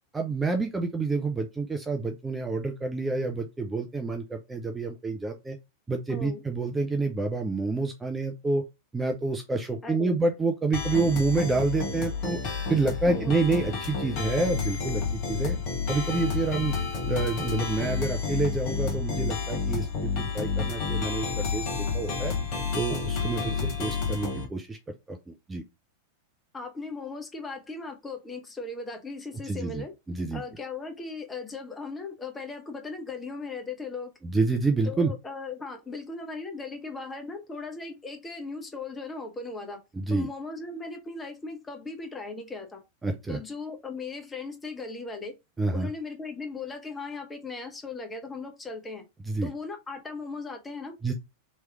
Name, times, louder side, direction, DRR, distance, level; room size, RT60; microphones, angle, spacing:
voice 1, 0.1-5.6 5.9-8.6 8.9-12.4 12.7-15.6 15.9-16.7 17.1-21.7 21.9-22.3 22.7-24.8 25.1-25.6 29.4-30.4 34.2-35.1 39.9-40.3 43.0-43.4 45.6-45.9 49.3-49.5 51.0-51.1, right 3 dB, 10° right, 0.5 m, -28 dB
voice 2, 6.1-6.4 9.8-10.2 13.1-13.4 26.5-29.9 30.3-34.1 34.8-39.8 40.1-42.8 43.3-45.4 45.7-49.0 49.4-50.9, left 3 dB, 15° left, 0.8 m, -38 dB
sound 1, 10.7-24.5, left 5 dB, 40° left, 1.2 m, -30 dB
3.2 x 3.0 x 3.4 m
figure-of-eight pair, 90°, 0 cm